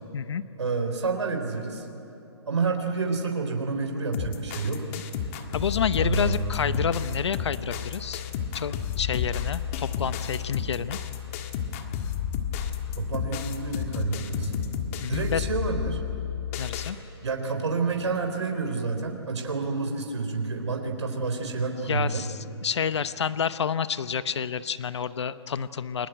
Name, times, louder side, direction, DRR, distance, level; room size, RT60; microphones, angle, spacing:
voice 1, 0.6-1.9 2.5-4.9 6.0-6.6 13.0-14.5 15.1-16.0 17.2-22.2, right 4 dB, 90° right, 4 dB, 3.9 m, -29 dB
sound 1, 4.1-16.9, left 8 dB, 30° left, 1.7 m, -31 dB
voice 2, 4.7-5.0 5.5-8.2 8.5-11.0 15.0-15.4 16.6-17.0 21.9-26.1, left 7 dB, 75° left, 13 dB, 1.0 m, -29 dB
29.5 x 21.5 x 9.1 m, 3.0 s
hypercardioid pair, 160°, 15 cm